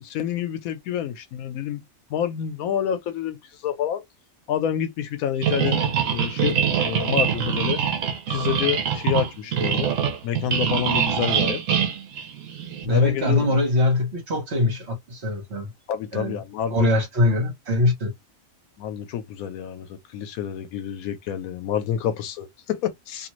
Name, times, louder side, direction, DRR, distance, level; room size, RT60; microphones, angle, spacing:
voice 1, 0.0-1.8 2.1-4.0 4.5-5.8 6.1-7.8 8.3-10.0 10.2-11.6 12.9-13.6 15.9-16.9 18.8-23.3, left 9 dB, 90° left, 1.1 m, -28 dB
sound 1, 5.4-12.9, right 7 dB, 70° right, 1.1 m, -24 dB
voice 2, 12.8-15.7 16.1-16.4 16.7-18.1, left 2 dB, 55° right, 1.3 m, -22 dB
2.7 x 2.5 x 3.0 m
omnidirectional pair, 1.4 m